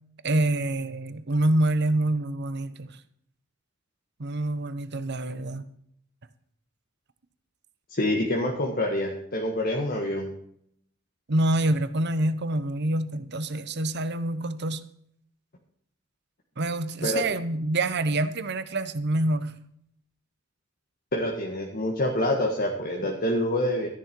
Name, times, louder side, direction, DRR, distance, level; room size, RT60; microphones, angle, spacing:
voice 1, 0.2-3.0 4.2-5.7 11.3-14.8 16.6-19.5, right 1 dB, 55° right, 1.0 m, -26 dB
voice 2, 7.9-10.3 17.0-17.2 21.1-23.9, left 1 dB, 45° left, 1.7 m, -26 dB
13.5 x 10.5 x 4.6 m
head